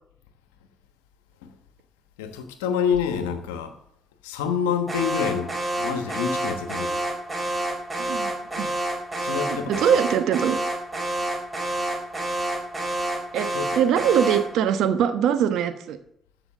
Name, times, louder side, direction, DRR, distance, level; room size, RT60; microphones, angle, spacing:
voice 1, 2.2-3.7 4.2-7.1 9.2-10.0 13.5-13.8, left 7 dB, 85° left, 1.1 m, -27 dB
Alarm, 4.9-14.6, right 1 dB, 20° right, 3.5 m, -29 dB
voice 2, 8.0-8.7 9.5-10.6 13.3-13.5 13.7-16.0, right 8 dB, 70° right, 1.1 m, -22 dB
14.0 x 5.8 x 6.8 m
hypercardioid pair, 50°, 0 cm